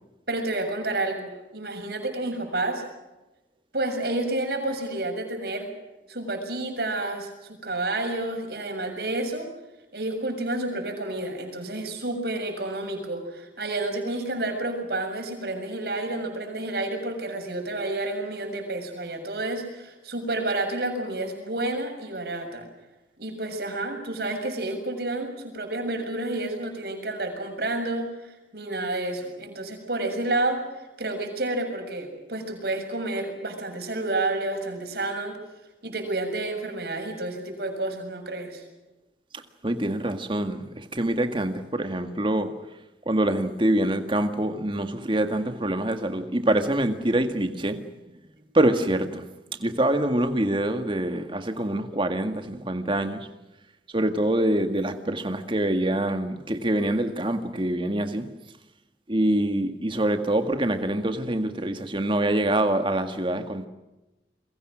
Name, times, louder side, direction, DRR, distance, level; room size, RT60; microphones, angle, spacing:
voice 1, 0.3-2.8 3.7-5.7 6.1-9.5 9.9-22.7 23.2-35.4 35.8-38.6, right 2 dB, 60° right, 6.9 m, -30 dB
voice 2, 39.6-42.5 43.1-47.9 48.5-49.3 49.6-53.3 53.9-58.3 59.1-63.7, right 1 dB, 30° right, 1.9 m, -25 dB
30.0 x 23.0 x 6.3 m
head